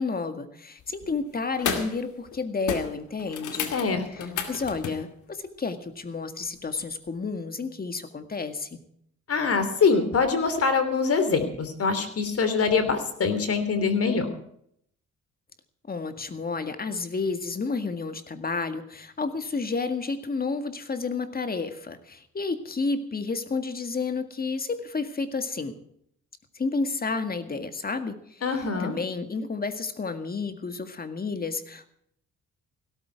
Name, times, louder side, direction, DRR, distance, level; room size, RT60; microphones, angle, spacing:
voice 1, 0.0-3.7 4.1-8.8 15.9-25.8 26.6-31.9, left 4 dB, 30° left, 9 dB, 1.9 m, -31 dB
sound 1, 0.8-1.1 1.5-2.0 2.3-2.4 2.7-5.1 7.1-7.2, left 6 dB, 80° left, 2.4 m, -32 dB
voice 2, 3.7-4.3 9.3-14.3 28.4-28.9, left 5 dB, 50° left, 10 dB, 3.2 m, -24 dB
16.5 x 13.5 x 4.7 m, 0.69 s
cardioid pair, 90°, 30 cm